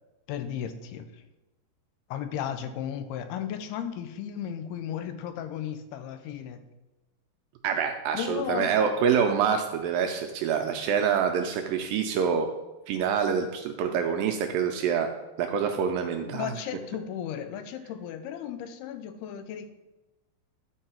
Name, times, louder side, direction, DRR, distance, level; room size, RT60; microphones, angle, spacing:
voice 1, 0.3-1.2 2.1-6.6 8.1-8.8 16.2-19.7, left 9 dB, 85° left, 9 dB, 2.6 m, -35 dB
voice 2, 7.6-12.5 12.9-15.1 15.4-16.5, right 7 dB, 80° right, 4 dB, 2.1 m, -26 dB
11.5 x 4.6 x 4.4 m, 1.1 s
omnidirectional pair, 4.5 m